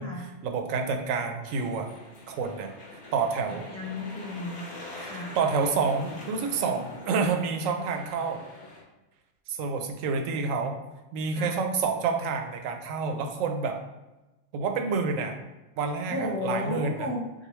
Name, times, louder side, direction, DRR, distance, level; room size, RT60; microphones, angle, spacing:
voice 1, 0.4-1.9 2.3-2.7 3.1-3.7 5.0-8.4 9.5-10.8 11.1-13.8 14.5-15.3 15.8-17.1, right 5 dB, 75° right, 5 dB, 0.9 m, -28 dB
sound 1, 1.4-8.8, left 2 dB, 55° left, 1.2 m, -44 dB
voice 2, 3.4-4.6 5.0-5.3 11.3-11.6 16.1-17.5, left 2 dB, 20° left, -4 dB, 0.4 m, -34 dB
6.5 x 2.2 x 3.1 m, 1.0 s
omnidirectional pair, 1.4 m